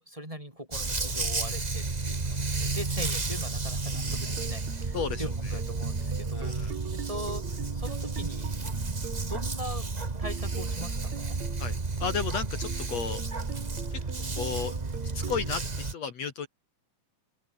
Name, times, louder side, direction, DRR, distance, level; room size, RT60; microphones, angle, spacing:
voice 1, 0.0-8.5 8.8-9.8 10.2-11.4, equal, 10° right, 4.6 m, -41 dB
Dog, 0.7-15.9, right 3 dB, 40° right, 0.6 m, -32 dB
sound 1, 3.9-9.5 10.2-12.3 12.6-15.6, right 10 dB, 65° right, 2.7 m, -43 dB
voice 2, 4.9-5.3 6.3-6.7 11.6-13.2 13.9-14.0 14.3-14.7 15.1-16.5, left 6 dB, 55° left, 3.0 m, -33 dB
open air
omnidirectional pair, 3.7 m